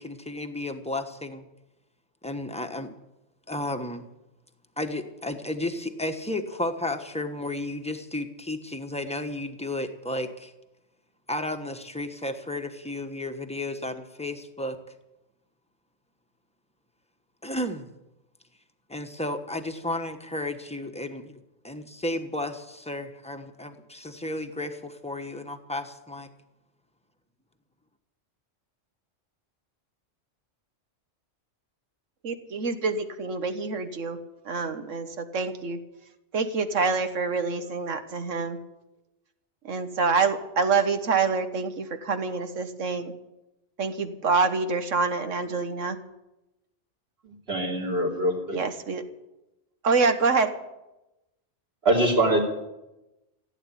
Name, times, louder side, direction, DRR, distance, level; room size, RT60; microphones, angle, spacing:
voice 1, 0.0-1.4 2.2-2.9 3.5-4.0 4.8-10.5 11.3-14.8 17.4-17.9 18.9-21.4 21.6-26.3, left 1 dB, 5° left, 6 dB, 1.1 m, -33 dB
voice 2, 32.2-34.2 34.4-35.8 36.3-38.6 39.6-43.1 43.8-46.0 48.5-49.0 49.8-50.5, right 4 dB, 85° right, 8 dB, 1.6 m, -26 dB
voice 3, 47.2-48.6 51.8-52.4, right 1 dB, 55° right, -1 dB, 3.5 m, -24 dB
16.0 x 8.7 x 9.9 m, 0.95 s
omnidirectional pair, 1.3 m